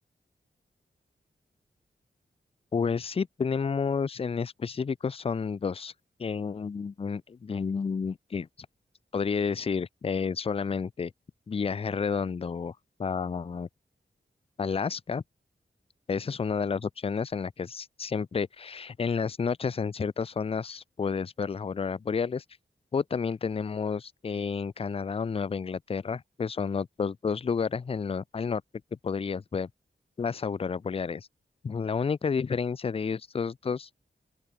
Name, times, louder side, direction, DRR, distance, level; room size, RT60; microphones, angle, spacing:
voice 1, 2.7-5.9 6.2-8.5 9.1-11.1 11.5-12.7 13.0-13.7 14.6-15.2 16.1-22.4 22.9-28.6 29.0-29.7 30.2-31.3 31.6-33.9, left 5 dB, 30° left, 0.4 m, -30 dB
open air
wide cardioid pair, 90°, 19 cm